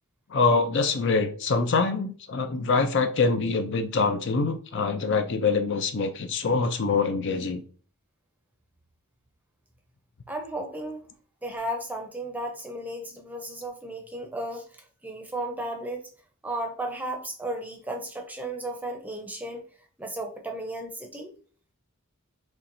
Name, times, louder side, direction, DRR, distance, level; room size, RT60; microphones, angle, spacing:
voice 1, 0.3-7.6, left 4 dB, 60° left, 7 dB, 0.5 m, -24 dB
voice 2, 10.3-11.1 11.4-14.7 15.0-16.0 16.4-19.7 20.0-21.3, right 1 dB, 10° right, 3 dB, 0.6 m, -34 dB
4.4 x 3.2 x 2.6 m, 0.42 s
head